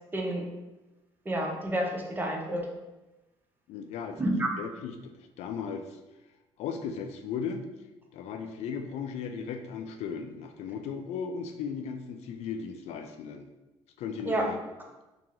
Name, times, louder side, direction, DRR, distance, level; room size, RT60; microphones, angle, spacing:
voice 1, 0.1-0.5 1.3-2.7 4.2-4.5 14.3-14.5, right 1 dB, 15° right, 1 dB, 0.6 m, -29 dB
voice 2, 3.7-4.2 4.6-6.0 6.6-7.6 8.1-13.5 14.0-14.6, left 6 dB, 75° left, 6 dB, 0.4 m, -36 dB
3.0 x 2.8 x 3.8 m, 1.0 s
cardioid pair, 115°, 11 cm